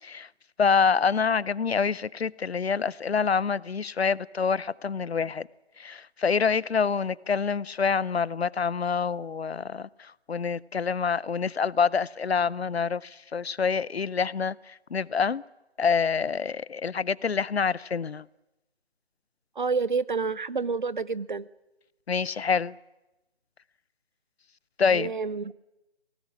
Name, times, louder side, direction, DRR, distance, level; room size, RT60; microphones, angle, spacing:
voice 1, 0.6-5.5 5.8-9.9 10.3-14.6 14.9-15.4 15.8-18.2 22.1-22.7 24.8-25.1, left 5 dB, 70° left, 0.7 m, -26 dB
voice 2, 19.6-21.5 24.9-25.5, right 4 dB, 45° right, 0.7 m, -28 dB
20.0 x 18.5 x 9.8 m
figure-of-eight pair, 165°, 33 cm